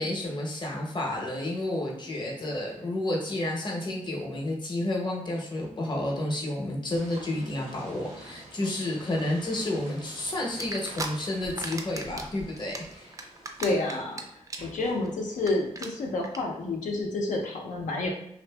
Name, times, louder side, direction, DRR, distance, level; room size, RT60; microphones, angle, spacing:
voice 1, 0.0-13.1, left 1 dB, 35° left, -2 dB, 0.7 m, -31 dB
sound 1, 6.9-15.8, right 1 dB, 80° right, 0.8 m, -49 dB
sound 2, 10.6-11.1 11.4-12.3 12.6-14.2 14.5-14.8 15.0-15.1 15.4-15.5 15.7-15.9 16.2-16.4, right 2 dB, 25° right, 0.4 m, -35 dB
voice 2, 13.6-14.2 14.6-18.1, left 2 dB, 85° left, 0 dB, 0.6 m, -29 dB
2.6 x 2.5 x 2.2 m, 0.76 s
cardioid pair, 50°, 13 cm